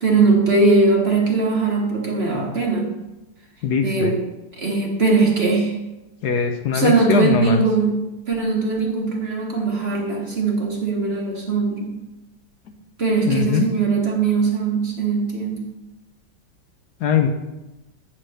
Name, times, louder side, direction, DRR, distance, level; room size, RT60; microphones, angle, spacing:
voice 1, 0.0-2.9 3.8-4.2 4.6-5.7 6.7-12.0 13.0-15.6, right 4 dB, 40° right, -1 dB, 1.2 m, -20 dB
voice 2, 3.6-4.1 6.2-7.6 13.3-13.7 17.0-17.3, left 6 dB, 65° left, 5 dB, 1.2 m, -20 dB
8.2 x 4.5 x 6.3 m, 0.99 s
omnidirectional pair, 1.9 m